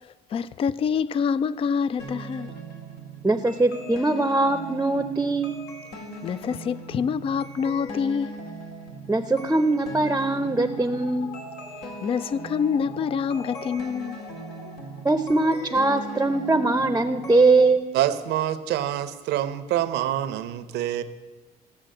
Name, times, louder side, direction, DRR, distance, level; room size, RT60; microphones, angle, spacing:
voice 1, 0.0-2.5 6.2-8.4 12.0-14.2, left 6 dB, 35° left, 0.3 m, -26 dB
sound 1, 2.0-17.7, right 1 dB, 80° left, 2.3 m, -39 dB
voice 2, 3.2-5.5 9.1-11.3 15.0-17.8, right 2 dB, 10° right, 0.6 m, -21 dB
voice 3, 17.9-21.0, right 12 dB, 80° right, 0.8 m, -26 dB
15.5 x 6.0 x 7.6 m
cardioid pair, 110°, 17 cm